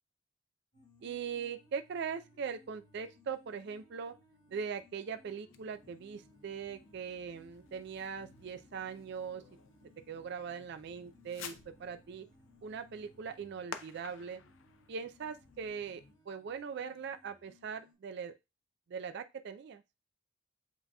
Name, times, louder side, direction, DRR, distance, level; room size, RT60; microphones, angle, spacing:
sound 1, 0.7-17.9, left 1 dB, 40° left, 1.8 m, -63 dB
voice 1, 1.0-4.1 4.5-9.4 10.1-11.5 11.8-12.2 12.6-14.4 14.9-16.0 16.3-18.3 18.9-19.8, right 6 dB, 55° right, 10 dB, 0.3 m, -40 dB
Fireworks, 5.5-16.2, left 6 dB, 65° left, 0.5 m, -54 dB
7.9 x 2.8 x 2.2 m, 0.24 s
head